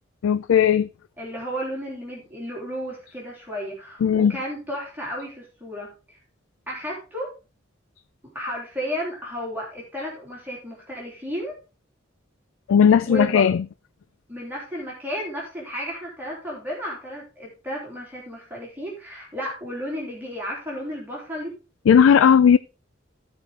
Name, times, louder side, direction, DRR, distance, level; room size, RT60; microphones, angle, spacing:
voice 1, 0.2-0.9 4.0-4.3 12.7-13.6 21.9-22.6, left 7 dB, 85° left, 0.3 m, -16 dB
voice 2, 1.2-6.2 6.7-7.3 8.3-11.6 13.0-13.5 14.3-21.5, equal, 10° right, 3.4 m, -33 dB
15.0 x 5.0 x 3.6 m
head